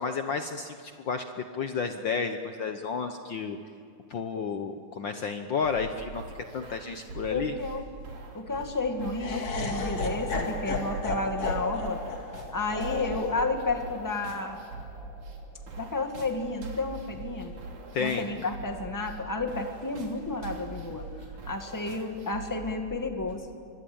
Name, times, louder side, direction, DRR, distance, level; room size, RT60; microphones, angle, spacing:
voice 1, 0.0-3.6 4.1-6.2 6.5-7.5 17.9-18.2, left 5 dB, 85° left, 6 dB, 1.0 m, -31 dB
sound 1, 5.6-23.3, right 2 dB, 65° right, 4.5 m, -43 dB
voice 2, 7.3-7.9 8.3-12.0 12.5-14.6 15.8-17.5 18.0-21.1 21.4-23.5, left 3 dB, 10° left, 4 dB, 1.4 m, -31 dB
Laughter, 9.2-15.3, left 2 dB, 50° left, 3.5 m, -34 dB
27.0 x 24.5 x 8.8 m, 2.3 s
omnidirectional pair, 3.7 m